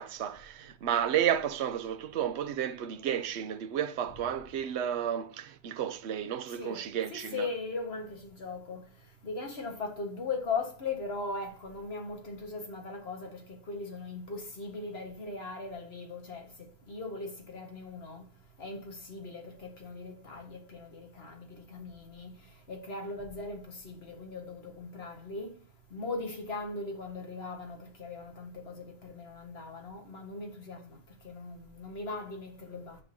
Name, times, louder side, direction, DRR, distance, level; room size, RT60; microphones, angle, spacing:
voice 1, 0.0-7.5, right 9 dB, 70° right, 0.9 m, -32 dB
voice 2, 7.1-8.8 9.2-16.5 16.9-18.3 18.6-22.3 22.7-25.6 25.9-31.0 31.2-33.0, left 3 dB, 60° left, 1.8 m, -39 dB
9.6 x 6.1 x 2.8 m
omnidirectional pair, 1.2 m